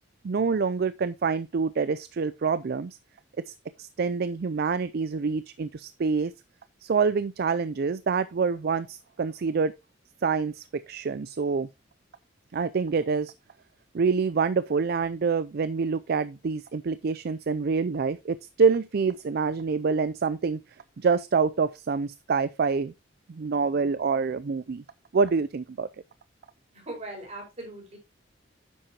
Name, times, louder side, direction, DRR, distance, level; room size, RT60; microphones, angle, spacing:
voice 1, 0.2-3.0 3.4-6.3 6.8-9.7 10.2-11.7 12.5-13.3 13.9-20.6 21.0-22.9 23.3-24.8 25.1-25.9, right 5 dB, 55° right, 0.4 m, -26 dB
voice 2, 26.7-28.0, right 1 dB, 35° right, 4.9 m, -39 dB
10.0 x 7.4 x 2.9 m
head